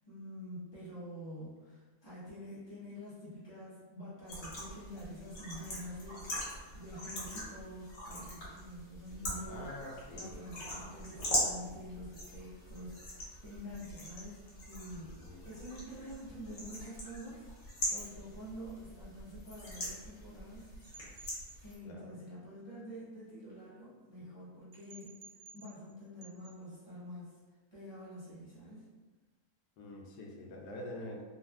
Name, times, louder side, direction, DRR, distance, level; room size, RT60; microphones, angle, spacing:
voice 1, 0.1-9.7 10.1-21.1 21.6-25.1 25.5-27.4 27.7-28.8, equal, 20° left, -10 dB, 0.8 m, -47 dB
sound 1, 4.3-21.8, left 1 dB, 65° left, 1.3 m, -42 dB
voice 2, 9.5-10.9 15.0-15.4 21.8-22.2 29.8-31.2, left 1 dB, 80° left, 0 dB, 1.1 m, -46 dB
sound 2, 20.8-21.6 24.7-25.9 26.2-26.6, right 4 dB, 80° right, 1.1 m, -55 dB
3.2 x 2.1 x 2.3 m, 1.3 s
omnidirectional pair, 1.7 m